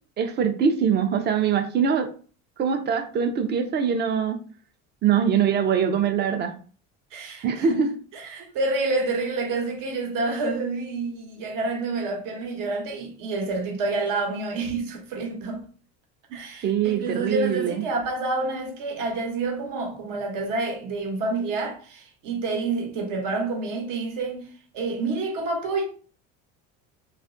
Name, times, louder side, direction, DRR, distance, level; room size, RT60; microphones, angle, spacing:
voice 1, 0.2-2.1 2.6-4.4 5.0-6.5 7.4-7.9 16.6-17.9, right 7 dB, 30° right, 0.4 m, -23 dB
voice 2, 7.1-7.8 8.1-15.6 16.3-25.8, right 3 dB, 65° right, 0.9 m, -28 dB
2.4 x 2.0 x 2.5 m
supercardioid pair, 105°, 34 cm